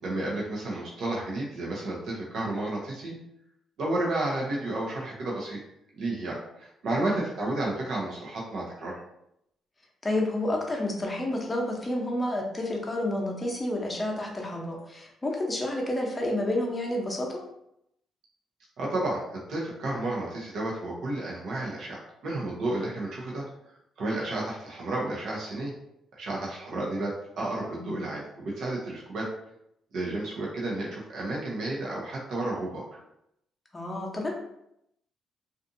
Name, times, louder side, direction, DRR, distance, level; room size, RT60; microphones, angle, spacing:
voice 1, 0.0-3.1 3.8-5.6 6.0-9.0 18.8-23.4 24.0-25.7 26.1-29.3 29.9-33.0, right 2 dB, 70° right, -4 dB, 0.7 m, -32 dB
voice 2, 10.0-17.4 27.7-28.0 33.7-34.3, left 1 dB, 20° left, 0 dB, 0.7 m, -30 dB
2.5 x 2.5 x 2.6 m, 0.79 s
cardioid pair, 90°, 0 cm